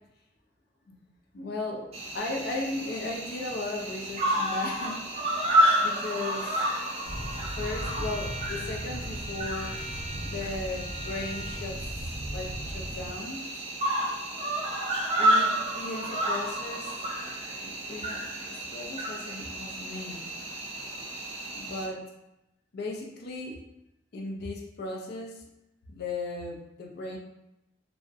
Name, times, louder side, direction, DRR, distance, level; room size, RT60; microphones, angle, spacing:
voice 1, 1.3-1.9 2.1-5.1 5.8-6.7 7.6-11.8 12.0-13.4 15.2-16.9 17.9-20.2 21.5-22.0 22.7-23.6 24.1-25.4 25.9-27.2, left 2 dB, 60° left, 0 dB, 0.4 m, -36 dB
Cricket, 1.9-21.9, right 1 dB, 35° right, 0.4 m, -31 dB
Bowed string instrument, 6.7-11.6, equal, 15° right, 0.8 m, -44 dB
sound 1, 7.1-13.1, equal, 50° right, 0.9 m, -38 dB
2.4 x 2.1 x 2.5 m, 0.90 s
head